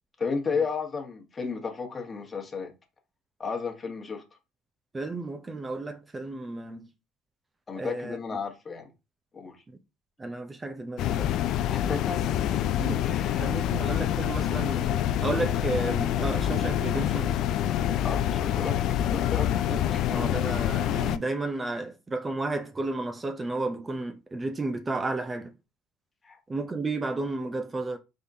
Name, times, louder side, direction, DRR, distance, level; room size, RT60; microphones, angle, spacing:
voice 1, 0.2-2.7 3.4-4.2 7.7-8.9 9.3-9.6 11.7-12.3 13.0-13.5 18.0-18.8 19.0-19.5 19.9-20.0 26.2-26.4, left 5 dB, 30° left, 1.3 m, -33 dB
voice 2, 4.9-6.9 7.8-8.2 10.2-11.3 12.7-13.1 13.4-17.4 19.3-19.8 20.1-25.5 26.5-28.0, right 2 dB, 20° right, 0.6 m, -32 dB
sound 1, 11.0-21.2, left 11 dB, 60° left, 0.3 m, -26 dB
3.7 x 3.5 x 2.7 m
hypercardioid pair, 65°, 0 cm